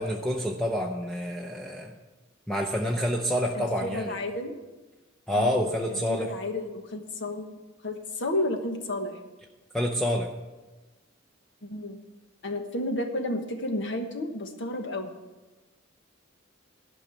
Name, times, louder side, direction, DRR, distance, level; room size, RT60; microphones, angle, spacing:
voice 1, 0.0-2.0 2.5-4.2 5.3-6.3 9.7-10.3, equal, ahead, 0 dB, 0.6 m, -28 dB
voice 2, 3.5-4.6 5.4-5.6 5.9-7.5 7.8-9.2 11.6-12.0 12.4-15.2, left 1 dB, 65° left, 5 dB, 1.3 m, -32 dB
12.0 x 5.4 x 8.1 m, 1.2 s
head